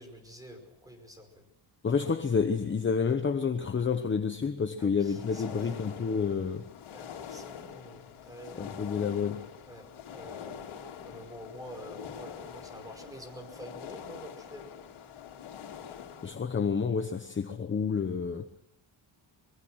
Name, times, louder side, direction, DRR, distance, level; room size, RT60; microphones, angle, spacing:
voice 1, 0.0-1.4 4.8-5.7 6.9-8.7 9.7-10.6 11.0-14.6, equal, 5° right, 5.2 m, -47 dB
voice 2, 1.8-6.7 8.6-9.5 15.8-18.5, left 6 dB, 25° left, 1.0 m, -29 dB
sound 1, 5.0-16.3, left 8 dB, 85° left, 3.3 m, -45 dB
23.5 x 22.0 x 6.3 m
wide cardioid pair, 175°, 47 cm